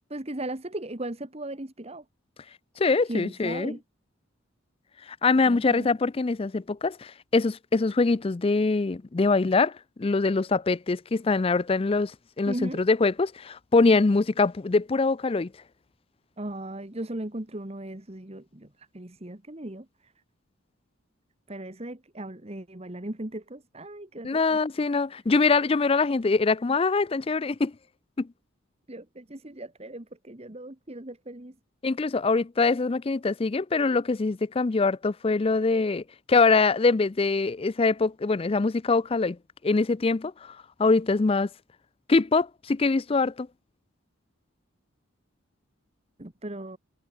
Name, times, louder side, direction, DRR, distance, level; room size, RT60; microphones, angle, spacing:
voice 1, 0.1-2.0 3.1-3.8 5.5-5.9 12.5-12.8 16.4-18.7 18.9-19.8 21.5-24.6 28.9-31.5 46.2-46.8, right 1 dB, 30° right, 1.5 m, -37 dB
voice 2, 2.8-3.7 5.2-9.7 10.0-12.1 12.4-15.5 24.2-27.7 28.2-28.3 31.8-39.4 39.6-41.5 42.1-43.5, left 3 dB, 25° left, 0.4 m, -23 dB
head